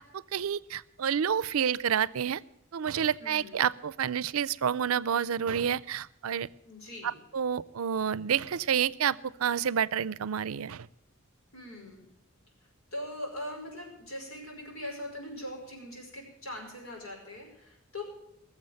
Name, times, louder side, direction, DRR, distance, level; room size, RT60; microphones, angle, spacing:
voice 1, 0.0-2.4 2.7-6.5 7.0-10.9, right 8 dB, 90° right, 20 dB, 0.5 m, -29 dB
voice 2, 3.2-3.6 6.7-7.2 11.5-12.0 12.9-18.0, left 1 dB, 85° left, 0 dB, 5.3 m, -41 dB
19.5 x 7.3 x 7.7 m, 0.83 s
head